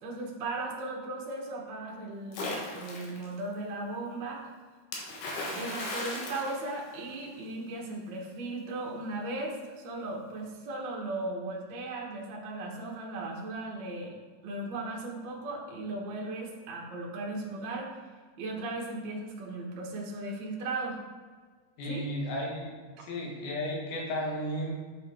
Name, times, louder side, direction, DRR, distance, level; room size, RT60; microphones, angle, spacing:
voice 1, 0.0-4.5 5.5-14.2 14.4-17.9 18.4-21.0 21.9-22.0, right 2 dB, 80° right, -2 dB, 1.0 m, -37 dB
Splash splatter, 2.3-3.3 4.9-7.4, left 2 dB, 70° left, 2.6 m, -37 dB
voice 2, 21.8-22.7 23.0-24.7, equal, 85° left, -1 dB, 3.4 m, -33 dB
7.4 x 6.4 x 3.5 m, 1.5 s
omnidirectional pair, 4.2 m